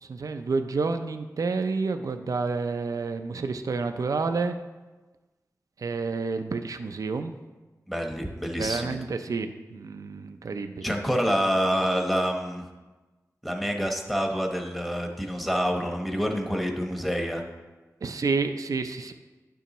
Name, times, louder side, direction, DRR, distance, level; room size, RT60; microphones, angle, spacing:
voice 1, 0.0-4.6 5.8-7.3 8.6-11.0 18.0-19.1, right 4 dB, 65° right, 8 dB, 0.4 m, -29 dB
voice 2, 7.9-9.0 10.8-12.6 13.4-17.4, equal, ahead, 2 dB, 1.0 m, -27 dB
10.0 x 6.8 x 3.0 m, 1.2 s
wide cardioid pair, 80°, 6 cm